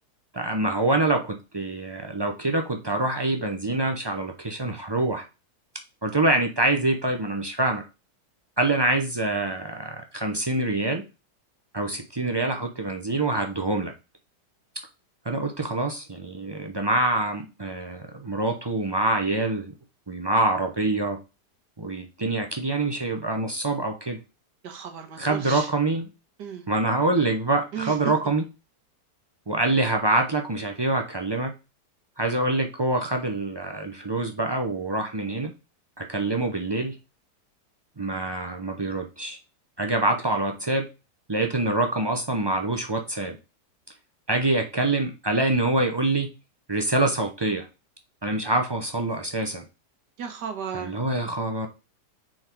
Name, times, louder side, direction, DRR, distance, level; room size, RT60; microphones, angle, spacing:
voice 1, 0.3-5.2 6.0-7.8 8.6-11.1 11.7-13.9 15.3-19.7 20.1-21.2 21.8-24.2 25.2-26.1 26.7-28.4 29.5-31.5 32.2-35.5 36.0-37.0 38.0-39.4 39.8-40.9 41.3-43.4 44.3-46.3 46.7-47.7 48.2-49.6 50.7-51.7, right 2 dB, 40° right, 4 dB, 0.3 m, -25 dB
voice 2, 24.6-25.7 26.4-26.6 27.7-28.0 50.2-51.0, right 7 dB, 85° right, 5 dB, 1.9 m, -34 dB
6.4 x 4.0 x 4.5 m, 0.29 s
omnidirectional pair, 1.8 m